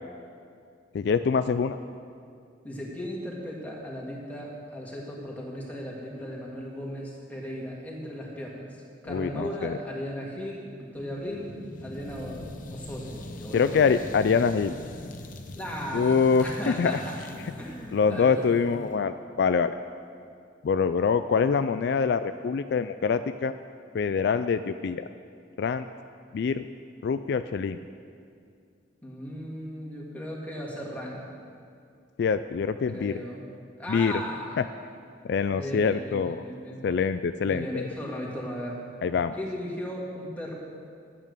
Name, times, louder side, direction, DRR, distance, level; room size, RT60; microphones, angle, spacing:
voice 1, 0.9-1.8 9.1-9.8 13.5-14.7 15.9-16.9 17.9-19.7 20.6-23.5 23.9-25.0 25.6-25.9 26.3-26.7 27.0-27.8 32.2-33.1 33.9-34.1 35.3-36.4 36.8-37.9 39.0-39.3, left 5 dB, 60° left, 11 dB, 0.3 m, -25 dB
voice 2, 2.6-8.8 9.0-11.5 11.8-12.4 12.7-14.1 15.6-17.2 17.5-18.5 29.0-31.4 32.9-33.5 33.8-34.6 35.5-36.8 37.4-38.9 39.3-40.5, equal, 10° left, -4 dB, 2.0 m, -36 dB
sound 1, 10.9-18.9, left 1 dB, 45° left, 0.8 m, -42 dB
12.0 x 8.9 x 6.6 m, 2.3 s
head